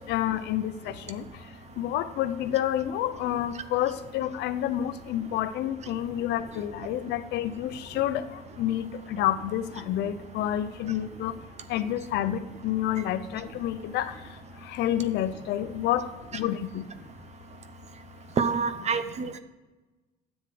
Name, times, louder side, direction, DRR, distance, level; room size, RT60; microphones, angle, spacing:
voice 1, 0.1-1.2 1.8-8.2 8.6-11.3 11.7-14.1 14.7-16.1 16.3-16.8, left 12 dB, 80° left, 11 dB, 0.6 m, -29 dB
voice 2, 18.4-19.4, right 5 dB, 40° right, 11 dB, 0.7 m, -27 dB
10.0 x 7.4 x 4.9 m, 1.2 s
cardioid pair, 110°, 17 cm